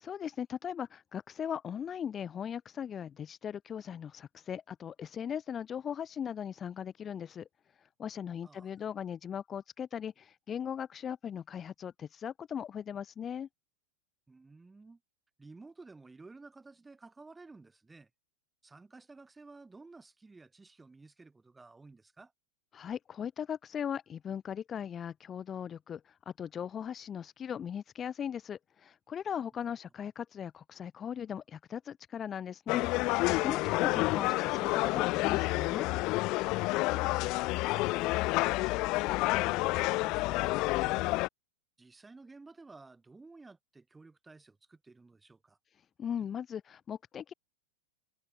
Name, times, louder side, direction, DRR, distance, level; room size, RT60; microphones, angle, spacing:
voice 1, 0.0-7.5 8.0-13.5 22.7-35.9 46.0-47.3, left 8 dB, 25° left, 0.9 m, -39 dB
voice 2, 14.3-15.0 15.4-18.1 18.6-22.3 36.9-41.0 41.8-45.6, right 3 dB, 10° right, 3.7 m, -54 dB
sound 1, 32.7-41.3, left 22 dB, 45° left, 0.5 m, -29 dB
supercardioid pair, 130°, 0 cm